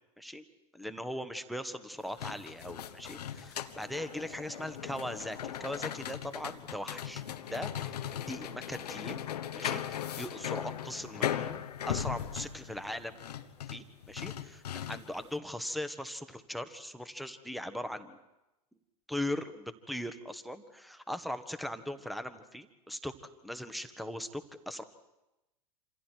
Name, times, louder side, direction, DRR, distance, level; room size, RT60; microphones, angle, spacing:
voice 1, 0.7-7.2 7.5-8.0 8.3-9.2 9.5-13.2 13.7-18.1 19.1-23.1 23.4-24.8, left 1 dB, ahead, 10 dB, 1.6 m, -39 dB
sound 1, 2.0-15.3, left 10 dB, 80° left, 1.2 m, -38 dB
27.5 x 26.5 x 4.7 m, 0.97 s
hypercardioid pair, 90°, 20 cm